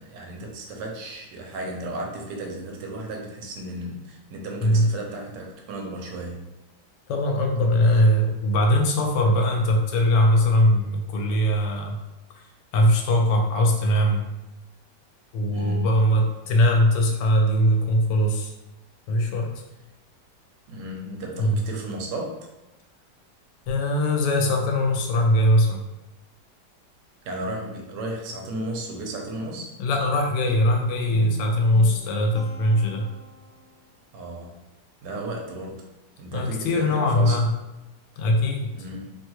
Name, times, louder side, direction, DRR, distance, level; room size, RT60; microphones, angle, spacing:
voice 1, 0.0-6.4 15.5-16.3 20.7-22.4 27.2-29.7 34.1-34.6 35.0-35.8 36.2-37.4 38.7-39.1, right 1 dB, 85° right, 1 dB, 1.2 m, -34 dB
voice 2, 4.6-4.9 7.1-12.0 12.4-12.5 12.7-14.2 15.3-18.5 19.1-19.6 21.4-21.6 23.7-25.8 29.8-33.0 36.3-37.6 38.2-38.7, left 1 dB, 80° left, 2 dB, 1.2 m, -21 dB
Guitar, 30.5-33.7, right 2 dB, 55° left, 0.9 m, -39 dB
3.0 x 2.3 x 2.8 m, 1.0 s
omnidirectional pair, 1.9 m